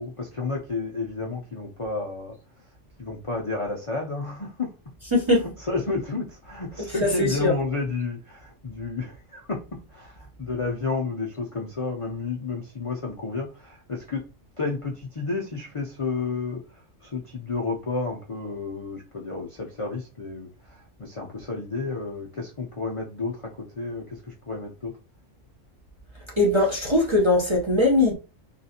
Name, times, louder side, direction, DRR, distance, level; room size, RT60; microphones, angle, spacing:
voice 1, 0.0-2.4 3.0-4.7 5.4-14.3 14.6-24.9, left 3 dB, 50° left, 0.4 m, -31 dB
voice 2, 5.1-5.5 7.0-7.5 26.4-28.1, left 2 dB, 30° right, 0.6 m, -20 dB
3.8 x 2.4 x 2.7 m
omnidirectional pair, 1.4 m